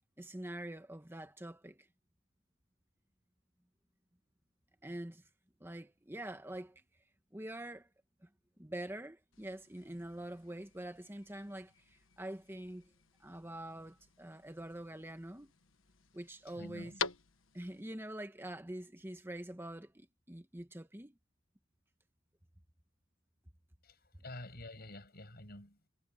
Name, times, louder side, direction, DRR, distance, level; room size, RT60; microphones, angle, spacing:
voice 1, 0.2-1.9 4.8-5.2 5.6-6.8 7.3-7.9 8.2-8.3 8.6-12.9 13.2-15.5 16.1-16.9 17.5-21.2, right 1 dB, 10° right, 1.3 m, -45 dB
sound 1, 9.3-17.8, left 6 dB, 80° left, 1.4 m, -48 dB
voice 2, 16.5-17.0 23.8-25.9, left 1 dB, 50° left, 7.2 m, -49 dB
head